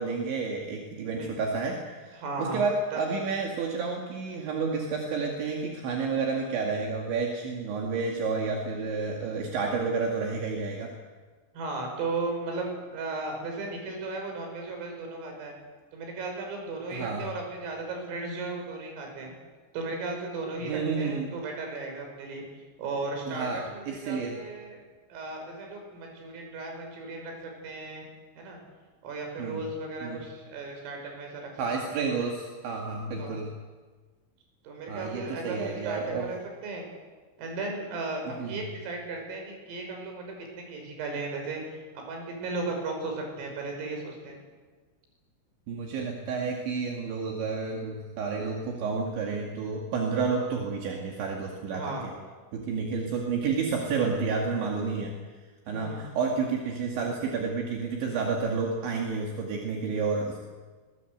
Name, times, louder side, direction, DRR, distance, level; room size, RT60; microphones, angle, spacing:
voice 1, 0.0-10.9 16.9-17.3 20.7-21.3 23.3-24.4 29.4-29.6 30.0-30.2 31.6-33.5 34.9-36.3 38.4-38.6 45.7-51.8 52.5-55.2 55.7-60.5, right 4 dB, 65° right, 0 dB, 4.4 m, -30 dB
voice 2, 2.1-2.6 2.9-3.0 11.5-15.5 15.9-19.3 19.7-22.4 22.8-24.8 25.1-28.1 28.4-28.6 29.0-31.9 33.2-33.4 34.6-36.4 36.6-36.9 37.4-44.4 51.7-52.1 55.7-56.1, right 3 dB, 85° right, 2 dB, 8.3 m, -36 dB
23.0 x 22.0 x 8.1 m, 1.4 s
omnidirectional pair, 5.7 m